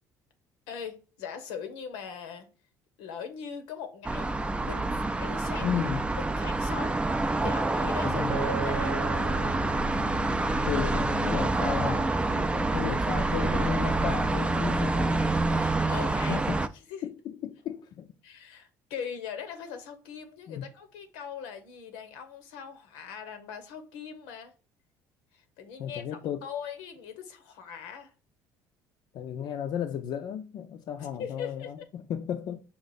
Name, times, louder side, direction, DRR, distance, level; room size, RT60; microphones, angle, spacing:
voice 1, 0.7-2.5 3.0-5.7 6.2-9.0 15.5-16.5 16.9-17.1 18.2-24.5 25.3-28.1 31.0-31.9, left 7 dB, 85° left, 0.8 m, -40 dB
sound 1, 4.0-16.7, right 2 dB, 15° right, 0.4 m, -27 dB
voice 2, 5.6-6.0 8.0-8.3 10.7-15.3 16.3-16.6 17.0-18.1 20.5-20.6 25.8-26.5 29.1-32.6, left 9 dB, 60° left, 0.5 m, -34 dB
Acoustic guitar, 8.3-12.6 13.2-13.5, right 3 dB, 70° right, 0.9 m, -38 dB
5.1 x 2.5 x 4.0 m
supercardioid pair, 80°, 8 cm